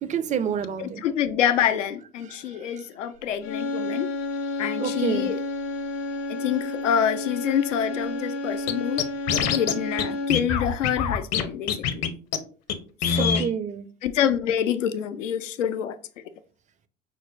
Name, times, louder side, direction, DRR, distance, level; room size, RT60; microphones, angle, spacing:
voice 1, 0.0-1.0 4.8-5.3 13.2-13.9, right 7 dB, 20° right, 0.3 m, -28 dB
voice 2, 0.8-4.1 4.6-5.4 6.3-9.0 9.5-12.1 13.0-13.4 14.0-16.0, left 9 dB, 90° left, 0.5 m, -26 dB
sound 1, 3.4-10.6, left 2 dB, 65° left, 1.1 m, -31 dB
Scratching (performance technique), 8.7-8.8 9.0-9.7 10.0-10.1 10.3-11.4 11.7-12.1 12.3-12.4 12.7-12.8 13.0-13.5, left 7 dB, 45° left, 0.7 m, -24 dB
6.0 x 2.1 x 2.5 m
hypercardioid pair, 75°, 36 cm